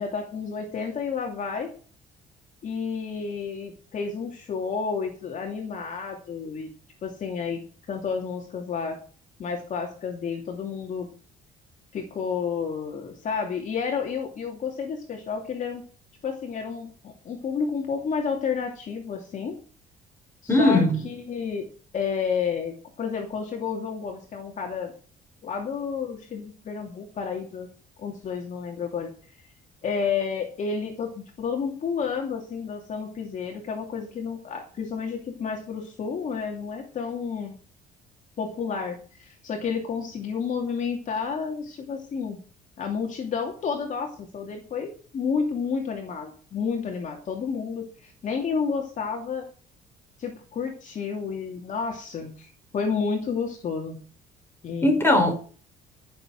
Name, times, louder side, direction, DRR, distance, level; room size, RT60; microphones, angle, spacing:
voice 1, 0.0-1.7 2.6-6.7 7.0-7.6 7.9-9.0 9.4-11.1 11.9-15.8 16.2-19.6 20.6-21.7 21.9-24.9 25.4-27.7 28.0-29.1 29.8-37.5 38.4-42.4 42.8-49.5 50.2-54.0 54.6-54.9, left 6 dB, 50° left, 2.7 m, -30 dB
voice 2, 20.5-21.0 54.8-55.3, left 1 dB, 15° left, 5.0 m, -19 dB
14.5 x 7.1 x 6.6 m
cardioid pair, 110°, 17 cm